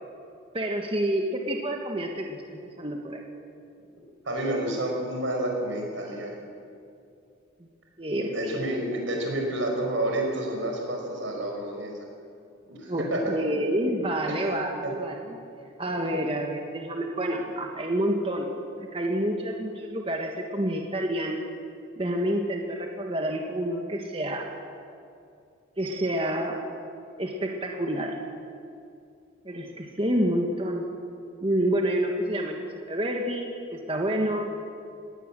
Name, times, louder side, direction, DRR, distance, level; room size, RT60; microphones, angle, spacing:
voice 1, 0.5-3.2 8.0-8.6 12.9-15.4 15.8-18.5 18.9-21.5 22.0-24.5 25.8-26.6 27.2-28.2 29.4-30.9 31.4-34.5, right 1 dB, 30° right, 2 dB, 1.4 m, -28 dB
voice 2, 4.2-6.5 8.3-12.1 12.7-13.4 14.3-14.4 14.8-14.9, right 1 dB, 85° right, 1 dB, 5.4 m, -29 dB
19.5 x 18.0 x 7.6 m, 2.5 s
head